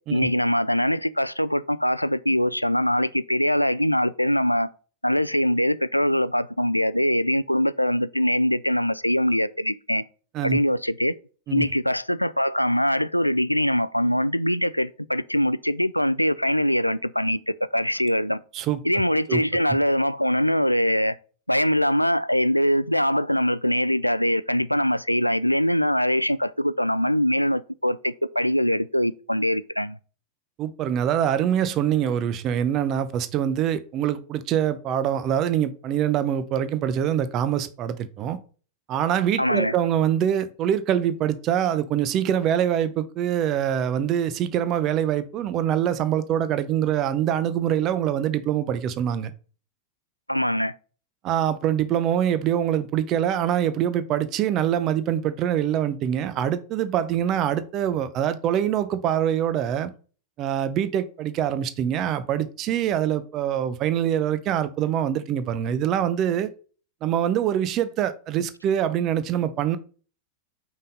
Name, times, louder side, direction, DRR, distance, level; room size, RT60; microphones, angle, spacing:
voice 1, 0.1-4.7 5.0-10.0 10.4-11.1 11.5-18.4 18.8-21.2 21.5-30.0 39.4-39.7 50.3-50.7, equal, 90° left, 0.3 m, -23 dB
voice 2, 30.6-38.4 38.9-49.3 51.2-59.9 60.4-66.5 67.0-69.8, right 10 dB, 35° right, 0.8 m, -24 dB
5.6 x 5.4 x 3.9 m
figure-of-eight pair, 90°, 0 cm